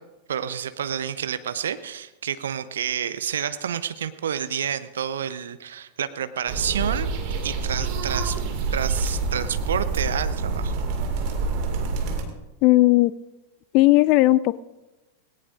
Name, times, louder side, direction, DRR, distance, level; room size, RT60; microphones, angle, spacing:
voice 1, 0.3-7.1 7.4-8.4 8.7-10.7, right 8 dB, 65° right, 13 dB, 0.7 m, -29 dB
sound 1, 6.5-12.2, right 4 dB, 45° right, 2.1 m, -27 dB
voice 2, 12.6-13.1 13.7-14.6, left 18 dB, 45° left, 20 dB, 0.4 m, -16 dB
18.5 x 18.0 x 2.6 m, 1.0 s
figure-of-eight pair, 90°, 0 cm